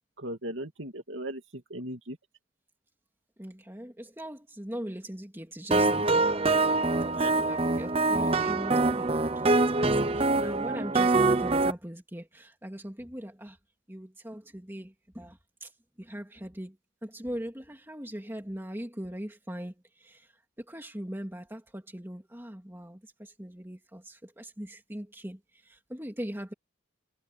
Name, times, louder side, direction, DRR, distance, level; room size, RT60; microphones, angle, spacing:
voice 1, 0.2-2.2 7.2-7.3 7.6-7.7, right 1 dB, 65° right, 2.7 m, -38 dB
voice 2, 3.4-6.5 7.0-13.6 13.9-26.5, equal, 10° right, 2.7 m, -41 dB
sound 1, 5.7-11.7, right 3 dB, 30° right, 0.9 m, -24 dB
head